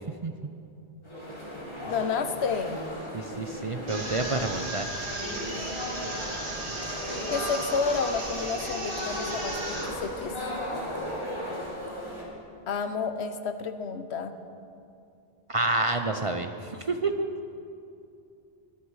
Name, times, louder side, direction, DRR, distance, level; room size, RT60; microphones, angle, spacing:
sound 1, 1.0-12.2, left 1 dB, 25° left, 3.3 m, -36 dB
voice 1, 1.8-2.8 7.3-10.3 12.7-14.4, left 5 dB, 80° left, 9 dB, 1.1 m, -30 dB
voice 2, 3.1-4.9 15.5-17.3, right 2 dB, 40° right, 6 dB, 0.6 m, -28 dB
sound 2, 3.9-9.9, right 1 dB, 80° right, 2.7 m, -35 dB
22.5 x 8.4 x 4.8 m, 2.6 s
omnidirectional pair, 1.1 m